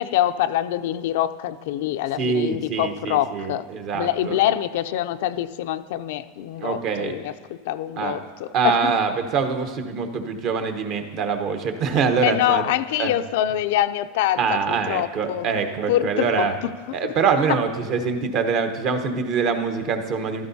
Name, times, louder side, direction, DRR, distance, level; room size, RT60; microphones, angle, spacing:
voice 1, 0.0-3.6 3.9-8.9 12.2-15.5 15.9-17.2, left 12 dB, 70° left, 10 dB, 0.4 m, -25 dB
voice 2, 2.2-4.4 6.6-7.1 8.0-8.2 8.5-12.6 13.0-13.1 14.4-16.5 16.9-20.5, right 5 dB, 45° right, 7 dB, 1.0 m, -24 dB
14.0 x 12.5 x 2.8 m, 1.4 s
supercardioid pair, 135°, 0 cm